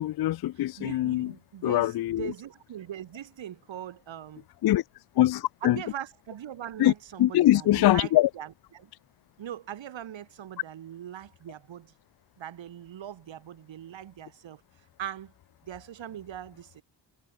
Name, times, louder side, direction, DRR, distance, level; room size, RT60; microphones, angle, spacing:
voice 1, 0.0-1.3 1.6-2.3 4.6-4.8 5.2-5.8 6.8-6.9 7.2-8.3, left 14 dB, 60° left, 0.5 m, -23 dB
voice 2, 0.8-4.4 5.6-8.9 9.4-11.9 12.4-14.6 15.0-15.3 15.6-16.8, right 10 dB, 85° right, 1.6 m, -41 dB
cardioid pair, 80°, 44 cm